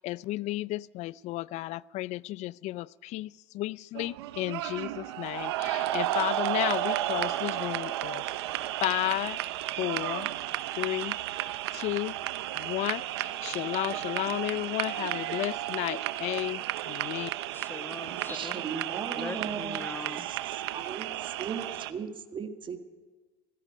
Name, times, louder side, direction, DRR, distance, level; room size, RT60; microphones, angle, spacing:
voice 1, 0.0-3.3 3.5-8.2 8.8-9.4 9.8-10.3 10.8-11.2 11.7-12.1 12.6-17.3, left 17 dB, 60° left, 23 dB, 0.4 m, -33 dB
sound 1, 3.9-21.9, right 14 dB, 90° right, 0.7 m, -33 dB
voice 2, 17.5-18.5 18.8-18.9 19.1-20.3, left 3 dB, 15° left, 10 dB, 1.3 m, -41 dB
voice 3, 18.3-19.8 20.1-20.4 20.7-21.1 21.4-22.8, right 6 dB, 40° right, 7 dB, 1.7 m, -37 dB
18.5 x 15.0 x 5.1 m, 1.3 s
supercardioid pair, 90°, 13 cm